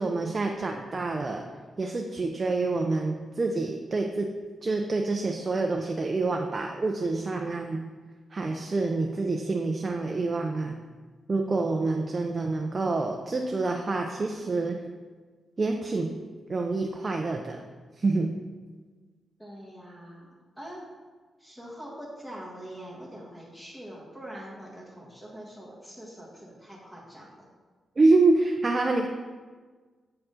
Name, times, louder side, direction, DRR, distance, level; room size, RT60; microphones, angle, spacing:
voice 1, 0.0-1.5 1.8-4.3 4.6-7.8 8.3-10.8 11.3-14.8 15.6-16.1 16.5-17.6 18.0-18.3 28.0-29.1, right 3 dB, 30° right, 2 dB, 0.4 m, -27 dB
voice 2, 19.4-20.9 21.4-27.5, equal, 10° left, -4 dB, 1.3 m, -44 dB
7.4 x 4.8 x 3.8 m, 1.4 s
wide cardioid pair, 130°, 0 cm